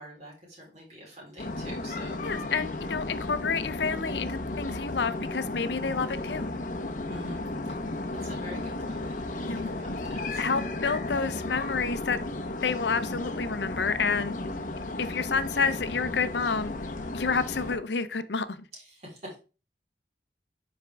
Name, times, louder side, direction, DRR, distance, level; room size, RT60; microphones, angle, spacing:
voice 1, 0.0-2.2 7.1-7.8 8.2-10.6 18.7-19.4, equal, 40° right, 3.9 m, -46 dB
sound 1, 1.4-17.8, left 2 dB, 45° left, 0.8 m, -34 dB
voice 2, 2.2-6.5 9.4-9.8 10.4-12.2 12.6-14.4 15.0-16.7 17.1-18.6, left 5 dB, 75° left, 0.7 m, -29 dB
10.0 x 4.5 x 3.4 m
head